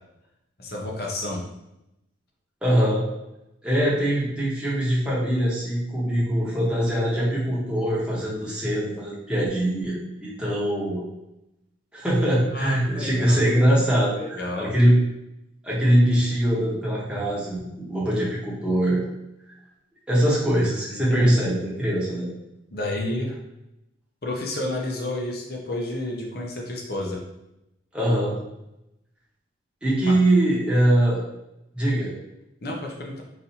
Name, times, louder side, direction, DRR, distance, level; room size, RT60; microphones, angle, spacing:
voice 1, 0.6-1.4 12.5-13.5 14.1-14.7 20.9-21.6 22.7-23.3 24.2-27.2 30.0-30.1 32.6-33.2, left 1 dB, 50° left, -1 dB, 0.7 m, -31 dB
voice 2, 2.6-3.0 3.6-11.0 11.9-15.0 15.6-19.0 20.1-22.3 27.9-28.4 29.8-31.2 31.7-32.1, right 1 dB, 5° right, -8 dB, 0.9 m, -22 dB
4.0 x 2.7 x 2.7 m, 0.88 s
head